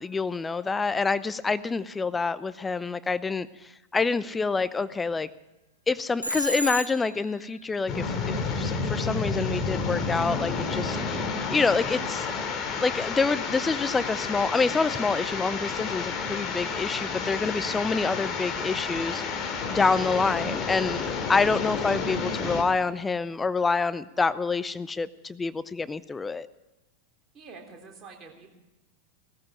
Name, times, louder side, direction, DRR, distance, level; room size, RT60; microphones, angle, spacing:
voice 1, 0.0-5.3 5.9-12.3 12.8-26.5, left 4 dB, 15° left, 16 dB, 0.5 m, -27 dB
Telephone, 6.2-7.3, equal, 90° right, 1.1 m, -30 dB
sound 1, 7.9-22.6, left 4 dB, 30° left, 2.6 m, -30 dB
voice 2, 27.3-28.5, right 4 dB, 25° right, 1 dB, 3.7 m, -46 dB
18.0 x 14.0 x 4.8 m, 1.0 s
figure-of-eight pair, 90°, 0 cm